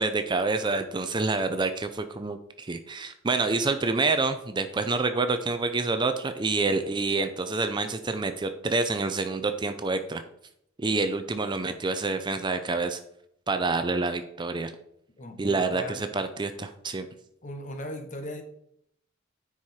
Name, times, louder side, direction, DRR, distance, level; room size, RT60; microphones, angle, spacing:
voice 1, 0.0-10.2 10.8-13.0 13.5-14.7 15.4-17.1, right 3 dB, 25° right, 0.5 m, -27 dB
voice 2, 15.2-16.1 17.4-18.4, equal, 40° left, 1.1 m, -38 dB
9.7 x 4.8 x 4.3 m
head